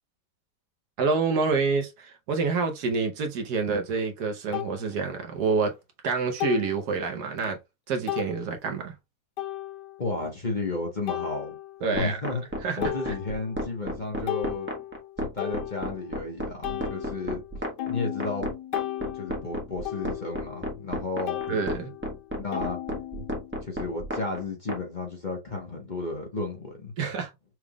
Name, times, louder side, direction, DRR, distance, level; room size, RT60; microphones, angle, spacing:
voice 1, 1.0-5.8 6.0-7.6 7.9-8.9 11.8-12.2 12.6-12.8 21.5-21.9 27.0-27.3, right 4 dB, 70° right, 1.4 m, -27 dB
sound 1, 3.7-3.8 4.5-4.7 6.4-6.8 7.4-7.5 8.1-8.3 9.4-10.0 11.1-11.9 12.4-12.5 12.8-13.7 14.0-16.2 16.6-21.0 21.3-23.6, left 13 dB, 75° left, 1.2 m, -35 dB
voice 2, 10.0-11.6 11.9-12.4 12.8-14.7 15.2-17.4 17.9-18.5 19.1-21.4 22.4-22.8 23.6-26.9, left 3 dB, 30° left, 1.1 m, -33 dB
sound 2, 11.9-24.8, equal, 5° right, 1.3 m, -32 dB
6.2 x 3.5 x 2.3 m
omnidirectional pair, 1.9 m